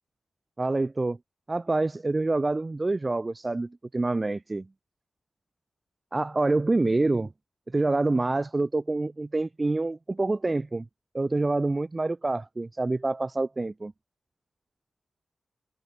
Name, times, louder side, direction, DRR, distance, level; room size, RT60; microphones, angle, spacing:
voice 1, 0.6-1.2 1.5-4.7 6.1-7.3 7.7-10.9 11.1-13.9, right 2 dB, 35° right, 0.5 m, -26 dB
cardioid pair, 45°, 0 cm